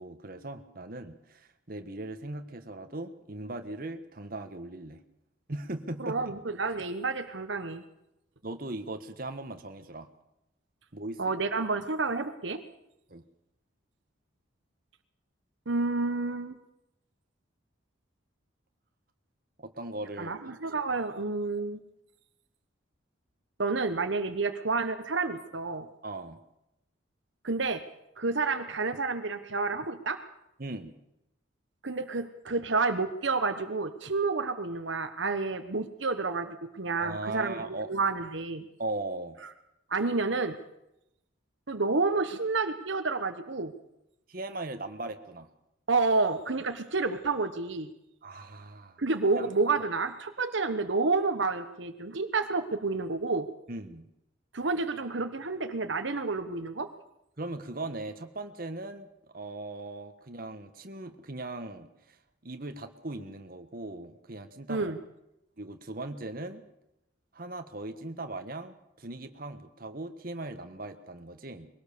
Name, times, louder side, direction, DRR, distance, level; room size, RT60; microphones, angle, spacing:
voice 1, 0.0-5.0 5.5-6.2 8.4-10.1 10.9-11.3 13.1-13.2 19.6-20.4 21.1-21.2 26.0-26.4 30.6-30.9 37.0-37.9 38.8-39.4 44.3-45.5 48.2-49.0 49.3-49.5 53.7-54.1 57.4-59.1 59.3-62.2 62.4-64.9 65.6-66.6 67.3-71.7, right 2 dB, 45° right, 7 dB, 1.4 m, -39 dB
voice 2, 6.0-7.8 11.2-12.6 15.7-16.6 20.2-21.8 23.6-25.9 27.4-27.8 28.2-30.2 31.8-38.7 39.9-40.6 41.7-43.7 45.9-47.9 49.0-53.5 54.5-56.9 64.7-65.0, right 3 dB, 70° right, 8 dB, 1.2 m, -29 dB
22.0 x 18.0 x 6.8 m, 0.85 s
head